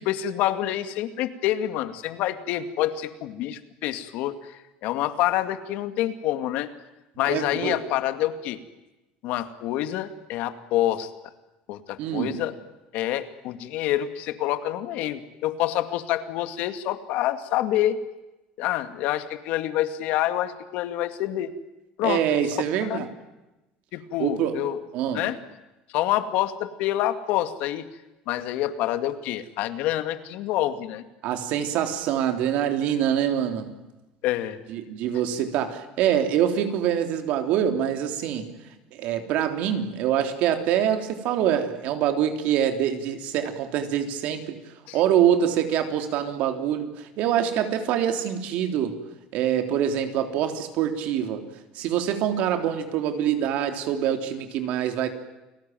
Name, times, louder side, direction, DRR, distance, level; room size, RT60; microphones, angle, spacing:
voice 1, 0.0-6.7 7.2-8.6 9.2-11.1 11.7-12.5 12.9-18.0 18.6-21.5 22.0-22.4 22.9-23.1 23.9-24.8 25.1-25.4 25.9-27.8 28.3-31.0 34.2-34.6 44.9-45.0, left 13 dB, 65° left, 9 dB, 2.2 m, -27 dB
voice 2, 7.2-7.8 12.0-12.4 22.0-23.1 24.2-24.6 24.9-25.3 31.2-33.8 34.7-38.5 38.9-44.6 44.9-49.0 49.3-51.5 51.7-55.1, right 9 dB, 60° right, 6 dB, 3.5 m, -25 dB
29.5 x 19.5 x 9.3 m, 1.0 s
cardioid pair, 150°, 3 cm